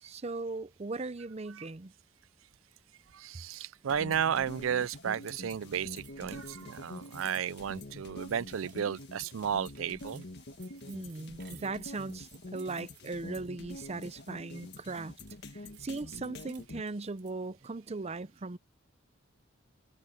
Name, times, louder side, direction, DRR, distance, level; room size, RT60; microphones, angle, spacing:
voice 1, 0.0-1.9 10.9-15.1 15.8-18.6, right 3 dB, 30° right, 0.6 m, -38 dB
voice 2, 3.1-10.3, right 8 dB, 85° right, 0.4 m, -33 dB
sound 1, 3.9-16.8, left 1 dB, 55° left, 1.7 m, -46 dB
sound 2, 5.2-14.3 14.6-17.5, right 14 dB, 60° right, 5.0 m, -60 dB
head